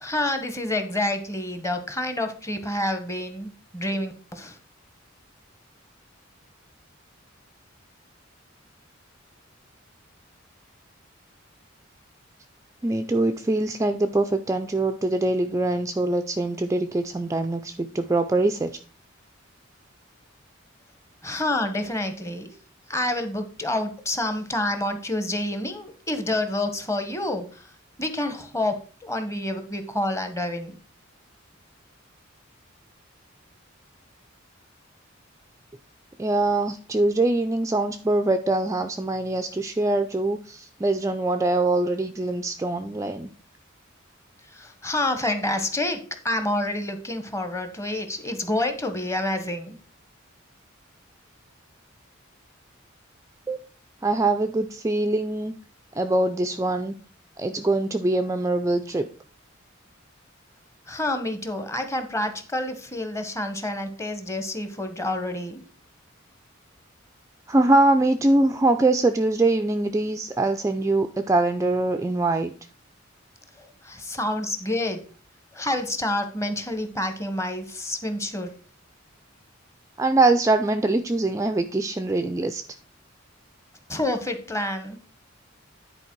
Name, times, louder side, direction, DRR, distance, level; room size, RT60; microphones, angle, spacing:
voice 1, 0.0-4.6 21.2-22.6 22.9-30.7 44.4-49.8 60.9-65.6 73.6-75.0 75.5-78.5 83.9-85.0, left 1 dB, 15° left, 8 dB, 1.0 m, -28 dB
voice 2, 12.8-18.8 36.2-43.3 53.5-53.6 54.0-55.5 56.0-56.9 57.4-59.1 67.5-72.5 80.0-82.6, right 2 dB, 15° right, 7 dB, 0.4 m, -23 dB
9.8 x 4.3 x 4.5 m, 0.40 s
head